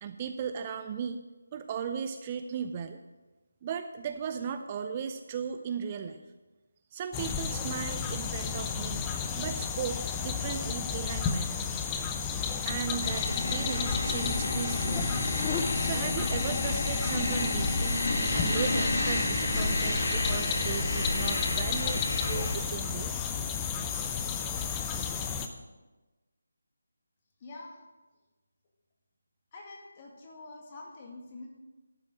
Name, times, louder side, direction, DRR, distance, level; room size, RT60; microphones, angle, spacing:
voice 1, 0.0-1.2 1.5-3.0 3.6-6.2 6.9-9.0 9.4-11.6 12.7-15.2 15.8-18.0 18.3-23.1, right 7 dB, 25° right, 9 dB, 0.4 m, -36 dB
sound 1, 7.1-25.5, left 6 dB, 15° left, 0.6 m, -32 dB
sound 2, 13.0-22.5, left 2 dB, 60° left, 1.8 m, -31 dB
voice 2, 27.4-27.8 29.5-31.5, left 2 dB, 30° left, 0 dB, 1.9 m, -46 dB
11.5 x 6.1 x 6.1 m, 1.2 s
figure-of-eight pair, 155°, 0 cm